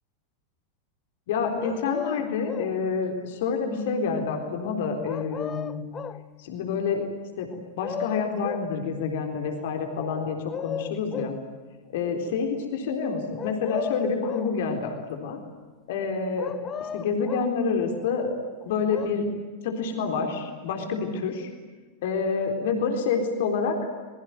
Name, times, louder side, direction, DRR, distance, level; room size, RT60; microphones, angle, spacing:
voice 1, 1.3-5.8 6.4-7.1 7.4-7.5 7.8-11.3 11.9-15.0 15.2-15.4 15.9-16.5 16.9-18.3 18.6-19.3 19.6-21.5 22.0-23.8, left 5 dB, 55° left, 4 dB, 3.9 m, -28 dB
sound 1, 1.6-2.8 5.0-6.2 7.5-8.7 10.0-11.4 13.4-14.6 16.4-17.6 18.6-19.1, left 8 dB, 25° left, 1.0 m, -35 dB
24.5 x 22.0 x 9.4 m, 1.4 s
figure-of-eight pair, 90°, 0 cm